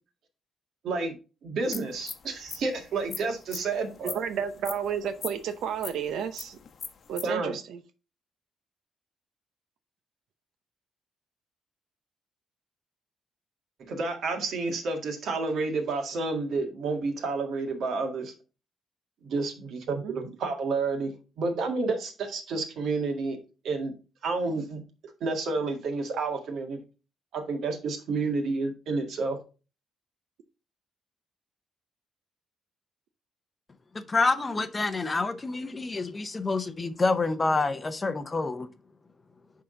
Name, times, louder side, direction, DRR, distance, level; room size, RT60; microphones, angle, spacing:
voice 1, 0.8-4.2 7.2-7.5 13.8-18.3 19.2-23.4 23.6-23.9 24.2-24.8 25.2-26.8 27.3-29.4, right 3 dB, 65° right, 1.9 m, -30 dB
sound 1, 1.7-7.2, left 6 dB, 45° left, 0.9 m, -41 dB
voice 2, 4.0-6.6 7.1-7.8 20.0-20.2 34.5-34.6, right 8 dB, 90° right, 0.7 m, -32 dB
voice 3, 34.1-38.7, left 3 dB, 20° left, 0.6 m, -27 dB
10.0 x 3.8 x 3.9 m
cardioid pair, 150°, 0 cm